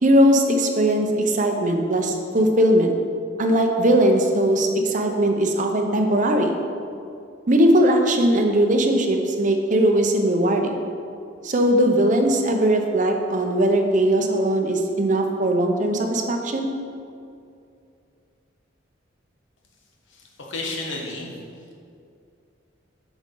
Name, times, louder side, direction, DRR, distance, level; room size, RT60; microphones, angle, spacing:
voice 1, 0.0-2.9 3.4-6.6 7.5-10.8 11.4-16.7, right 1 dB, 40° right, 4 dB, 0.7 m, -19 dB
voice 2, 20.1-21.3, left 2 dB, 80° left, 0 dB, 1.2 m, -32 dB
7.4 x 6.1 x 3.8 m, 2.5 s
head